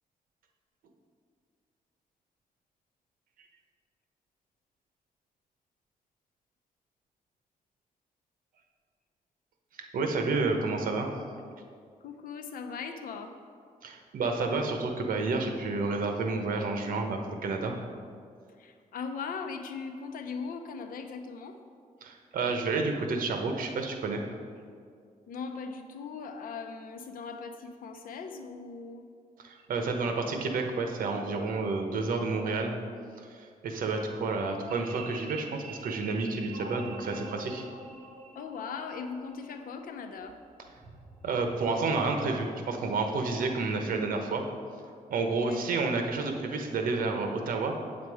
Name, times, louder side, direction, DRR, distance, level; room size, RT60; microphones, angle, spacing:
voice 1, 9.8-11.1 13.8-17.7 22.0-24.2 29.4-32.8 33.2-37.6 41.2-44.4 45.1-47.8, right 3 dB, 80° right, 4 dB, 1.1 m, -30 dB
voice 2, 12.0-13.4 18.6-21.6 25.3-29.0 38.3-40.4 45.4-45.6, left 5 dB, 90° left, 6 dB, 0.8 m, -39 dB
sound 1, 34.7-41.6, right 3 dB, 55° right, 1.8 m, -46 dB
8.3 x 7.5 x 4.9 m, 2.2 s
wide cardioid pair, 155°, 14 cm